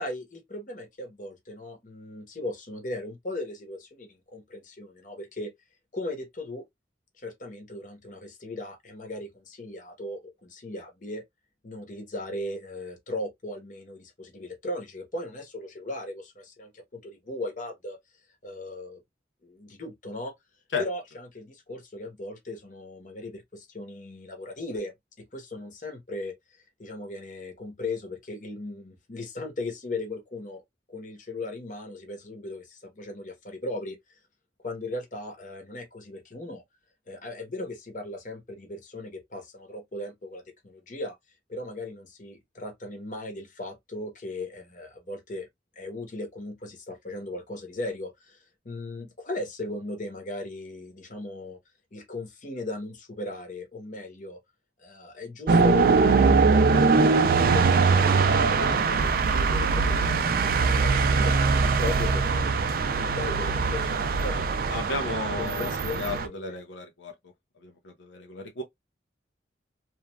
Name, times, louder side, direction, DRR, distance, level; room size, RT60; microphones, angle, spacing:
voice 1, 0.0-5.5 5.9-6.6 7.2-11.2 11.6-18.0 18.4-19.0 19.4-20.3 20.8-24.9 25.2-30.6 30.9-34.0 34.6-36.6 37.1-41.1 41.5-45.5 45.8-51.6 51.9-54.4 54.8-61.4 61.8-64.7 65.0-66.6, left 2 dB, 45° left, 0.9 m, -37 dB
sound 1, 55.5-66.3, right 4 dB, 55° right, 0.4 m, -22 dB
voice 2, 64.7-67.1 67.6-68.6, left 3 dB, 85° left, 0.6 m, -34 dB
3.0 x 2.4 x 2.2 m
head